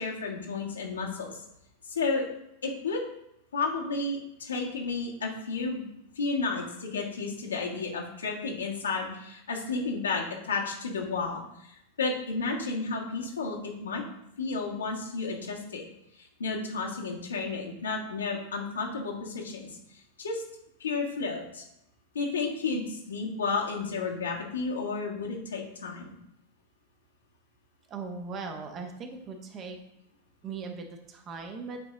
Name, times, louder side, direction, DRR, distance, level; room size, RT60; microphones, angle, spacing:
voice 1, 0.0-1.4 1.9-2.3 2.6-3.0 3.5-5.8 6.1-14.0 14.4-15.8 16.1-20.4 20.8-21.6 22.1-26.1, left 4 dB, 70° left, -1 dB, 1.5 m, -32 dB
voice 2, 27.9-29.8 30.4-31.8, right 4 dB, 30° right, 5 dB, 1.0 m, -39 dB
8.6 x 4.2 x 3.7 m, 0.79 s
figure-of-eight pair, 90°, 0 cm